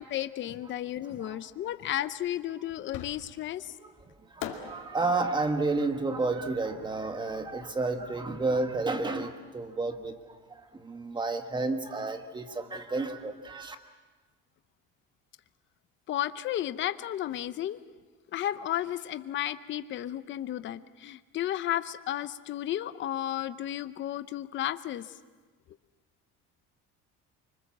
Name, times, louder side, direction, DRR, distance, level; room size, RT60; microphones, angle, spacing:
voice 1, 0.0-3.7 16.1-17.8 18.3-25.1, left 12 dB, 40° left, 13 dB, 0.8 m, -33 dB
Fireworks, 2.9-3.6 4.4-7.5, left 10 dB, 80° left, 2.5 m, -44 dB
voice 2, 4.3-13.8, right 3 dB, 15° right, 7 dB, 1.4 m, -31 dB
25.0 x 25.0 x 7.3 m, 1.3 s
cardioid pair, 165°, 30 cm